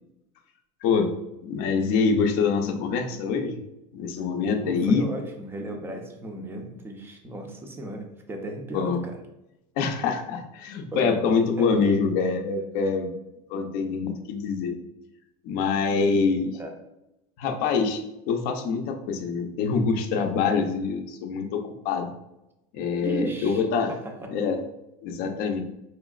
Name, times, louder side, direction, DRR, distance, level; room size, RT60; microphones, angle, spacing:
voice 1, 1.4-3.6 3.9-5.1 8.7-9.0 9.8-13.1 13.5-14.8 15.4-16.5 17.4-18.0 18.3-22.1 22.7-23.9 24.3-24.6 25.0-25.6, left 5 dB, 50° left, 4 dB, 0.6 m, -25 dB
voice 2, 4.6-9.2 10.9-11.2 11.6-11.7 16.5-16.7 23.0-24.3, right 1 dB, 10° right, 3 dB, 0.5 m, -35 dB
4.5 x 3.0 x 2.4 m, 0.90 s
supercardioid pair, 145°, 19 cm